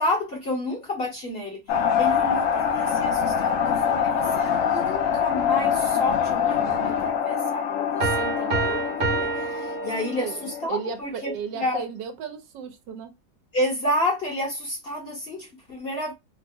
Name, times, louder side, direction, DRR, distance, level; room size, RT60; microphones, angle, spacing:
voice 1, 0.0-1.6 2.0-11.8 13.5-16.1, left 1 dB, 40° left, 0.9 m, -30 dB
sound 1, 1.7-10.7, left 7 dB, 90° left, 0.7 m, -24 dB
sound 2, 8.0-10.5, right 4 dB, 55° right, 1.1 m, -28 dB
voice 2, 10.2-13.1, right 6 dB, 80° right, 1.3 m, -34 dB
3.2 x 2.0 x 3.5 m
omnidirectional pair, 1.9 m